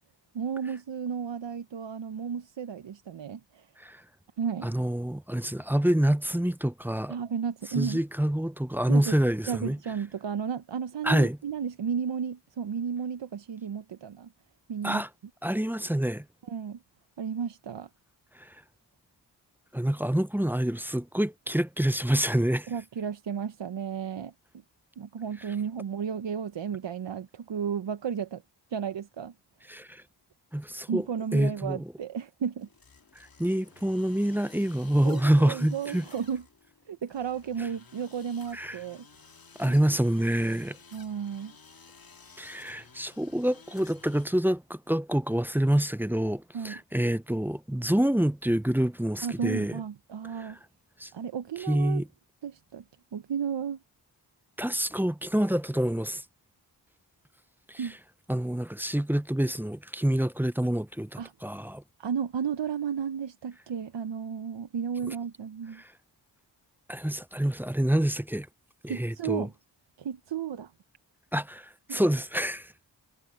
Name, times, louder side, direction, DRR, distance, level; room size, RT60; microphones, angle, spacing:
voice 1, 0.3-3.7 4.4-4.7 7.1-8.0 8.9-9.1 9.5-14.3 14.7-15.0 16.4-16.8 17.2-17.9 22.7-24.3 25.0-28.4 28.7-29.3 30.9-32.7 35.0-36.4 36.9-39.1 39.6-39.8 40.9-41.5 46.5-46.8 49.2-50.6 51.1-52.0 52.4-52.8 53.1-53.8 57.8-57.9 61.2-61.3 62.0-65.8 68.9-69.5 70.0-70.7 71.9-72.0, right 7 dB, 75° right, 1.0 m, -33 dB
voice 2, 4.6-7.2 7.8-9.8 11.0-11.4 14.8-15.1 15.4-16.2 18.4-18.6 19.7-22.7 29.7-30.0 30.5-31.0 31.3-31.9 33.4-36.0 38.5-38.8 39.6-40.8 42.4-49.8 50.3-50.5 51.0-51.1 51.7-52.1 54.6-56.2 57.7-57.9 58.3-61.8 65.1-65.2 65.8-65.9 66.9-68.5 68.8-69.5 71.3-72.7, right 1 dB, 5° right, 0.5 m, -27 dB
sound 1, 32.6-44.3, left 4 dB, 50° left, 2.3 m, -54 dB
cardioid pair, 55°, 44 cm